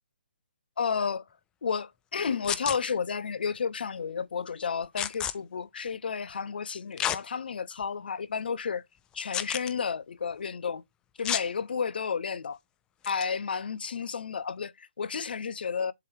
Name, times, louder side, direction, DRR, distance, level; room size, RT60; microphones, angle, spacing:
voice 1, 0.8-1.2 1.6-8.8 9.1-10.8 11.2-12.6 13.1-15.9, left 6 dB, 65° left, 0.5 m, -32 dB
sound 1, 2.4-2.8 5.0-5.3 7.0-7.2 7.8-7.9 9.3-9.7 11.2-11.5 13.0-13.2, left 10 dB, 15° left, 0.4 m, -30 dB
7.5 x 3.1 x 4.5 m
figure-of-eight pair, 140°, 6 cm